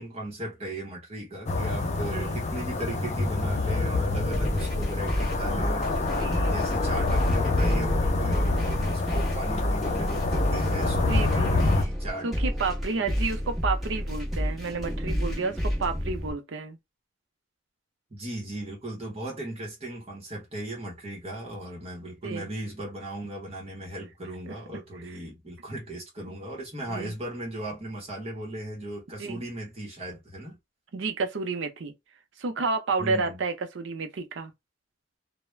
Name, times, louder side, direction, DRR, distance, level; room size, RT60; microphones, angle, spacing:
voice 1, 0.0-6.1 6.5-12.3 15.5-15.6 18.1-30.6 33.0-33.4, right 1 dB, 35° right, 0.9 m, -37 dB
sound 1, 1.5-11.8, left 2 dB, 35° left, 0.5 m, -27 dB
voice 2, 1.9-2.4 6.1-6.6 11.1-11.6 12.2-16.8 22.2-22.5 24.5-24.6 25.0-25.2 26.3-26.4 26.9-27.1 29.2-29.4 30.9-31.9 32.4-34.5, right 4 dB, 75° right, 0.5 m, -31 dB
sound 2, 4.3-16.3, equal, ahead, 1.0 m, -30 dB
2.3 x 2.1 x 3.1 m
head